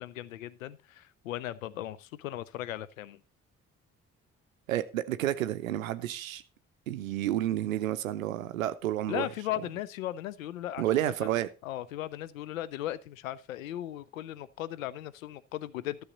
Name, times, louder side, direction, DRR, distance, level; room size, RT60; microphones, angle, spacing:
voice 1, 0.0-3.2 9.1-16.0, left 13 dB, 80° left, 0.5 m, -37 dB
voice 2, 4.7-6.4 6.9-9.3 10.8-11.5, right 13 dB, 85° right, 0.5 m, -30 dB
12.5 x 6.4 x 3.9 m
figure-of-eight pair, 40°, 39 cm